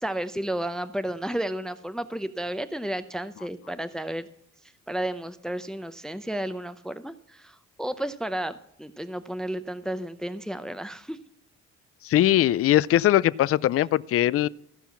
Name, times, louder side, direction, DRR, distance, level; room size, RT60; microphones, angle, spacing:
voice 1, 0.0-4.3 4.9-11.2, right 1 dB, ahead, 12 dB, 0.6 m, -32 dB
voice 2, 12.0-14.5, left 13 dB, 50° left, 19 dB, 0.4 m, -21 dB
15.0 x 5.6 x 5.8 m, 0.73 s
cardioid pair, 90°, 30 cm